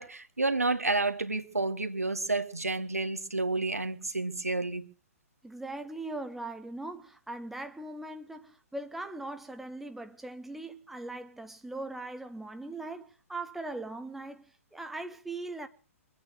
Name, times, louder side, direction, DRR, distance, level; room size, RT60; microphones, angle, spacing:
voice 1, 0.0-4.9, right 3 dB, 85° right, 1.6 m, -30 dB
voice 2, 5.4-15.7, right 2 dB, 5° right, 1.0 m, -40 dB
23.0 x 9.0 x 6.6 m
figure-of-eight pair, 120°, 8 cm